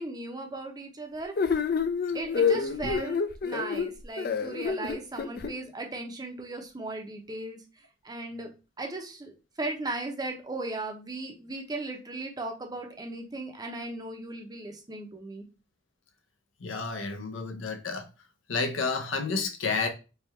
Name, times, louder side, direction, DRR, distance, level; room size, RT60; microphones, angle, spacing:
voice 1, 0.0-1.3 2.1-7.6 8.0-8.5 8.8-15.5, right 2 dB, 20° right, 0.6 m, -37 dB
sound 1, 1.4-5.5, left 6 dB, 50° left, 0.4 m, -28 dB
voice 2, 16.6-18.1 18.5-19.9, left 4 dB, 85° left, 0.7 m, -30 dB
3.4 x 2.3 x 4.2 m
head